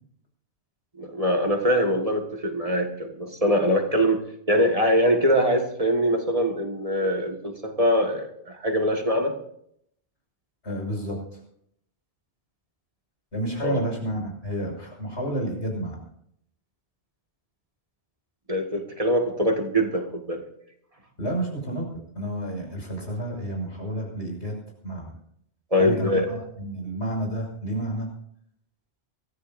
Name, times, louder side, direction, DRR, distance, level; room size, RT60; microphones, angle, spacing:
voice 1, 1.0-9.4 13.6-13.8 18.5-20.4 25.7-26.3, equal, 35° right, 3 dB, 1.9 m, -23 dB
voice 2, 10.6-11.4 13.3-16.0 21.2-21.8 22.1-24.6 24.8-25.1 25.8-28.1, right 1 dB, 85° left, 0 dB, 6.2 m, -30 dB
24.0 x 14.5 x 2.6 m, 0.70 s
omnidirectional pair, 1.1 m